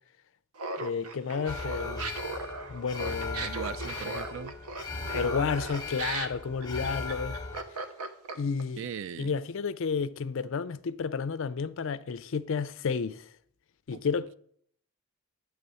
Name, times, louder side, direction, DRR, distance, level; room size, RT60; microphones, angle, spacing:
Laughter, 0.6-8.6, right 3 dB, 85° right, 0.8 m, -37 dB
voice 1, 0.8-2.1 2.7-3.5 5.1-7.4 8.3-8.9 9.2-13.3 13.9-14.3, left 5 dB, 60° left, 0.4 m, -31 dB
Alarm, 1.5-7.6, left 3 dB, 15° left, 0.9 m, -38 dB
voice 2, 3.4-4.6 8.8-9.3 13.9-14.0, right 7 dB, 60° right, 0.3 m, -39 dB
9.6 x 3.4 x 6.8 m
head